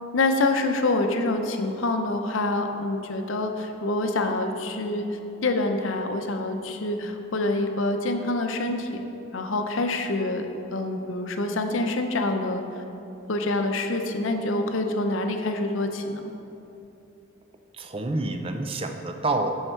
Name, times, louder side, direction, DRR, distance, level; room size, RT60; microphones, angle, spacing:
voice 1, 0.1-9.0 9.3-10.5 10.7-12.8 13.3-16.2, left 2 dB, 70° left, 5 dB, 0.7 m, -26 dB
voice 2, 17.8-19.5, right 2 dB, 25° right, 6 dB, 0.5 m, -28 dB
10.0 x 6.5 x 4.5 m, 2.9 s
head